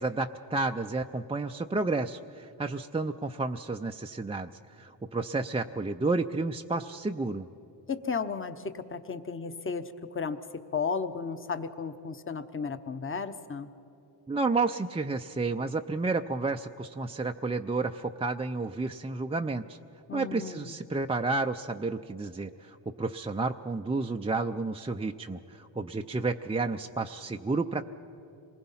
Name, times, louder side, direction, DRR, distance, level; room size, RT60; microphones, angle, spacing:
voice 1, 0.0-7.5 14.3-19.8 20.1-27.8, right 3 dB, 15° right, 4 dB, 0.4 m, -31 dB
voice 2, 7.9-9.8 10.1-10.4 10.7-13.7 20.1-20.7, left 5 dB, 25° left, 11 dB, 0.9 m, -34 dB
26.5 x 20.0 x 5.6 m, 2.9 s
cardioid pair, 90°, 50 cm